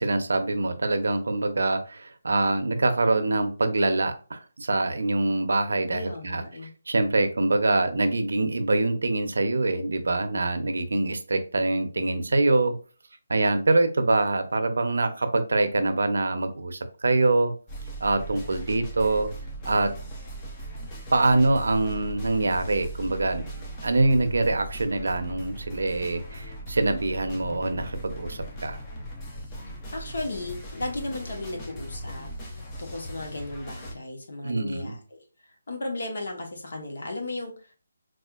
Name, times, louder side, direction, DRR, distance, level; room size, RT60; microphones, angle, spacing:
voice 1, 0.0-6.4 6.9-12.7 13.3-17.5 18.0-19.3 19.6-19.9 21.1-23.5 23.8-28.8 34.4-34.9, right 2 dB, 80° right, 8 dB, 0.6 m, -24 dB
voice 2, 5.9-6.7 29.9-35.2 35.7-37.5, left 2 dB, 70° left, 2 dB, 1.0 m, -35 dB
sound 1, 17.7-33.9, right 1 dB, 20° left, 0.6 m, -39 dB
4.2 x 2.4 x 2.4 m, 0.36 s
hypercardioid pair, 165°, 0 cm